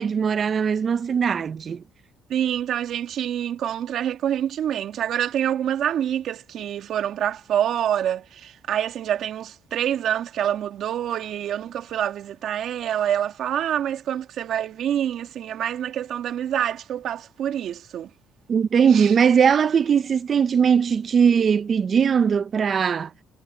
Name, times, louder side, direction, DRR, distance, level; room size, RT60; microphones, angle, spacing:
voice 1, 0.0-1.8 18.5-23.1, right 7 dB, 45° right, 0.8 m, -20 dB
voice 2, 2.3-18.1 18.9-19.1, right 10 dB, 65° right, 2.2 m, -26 dB
cardioid pair, 100°, 0 cm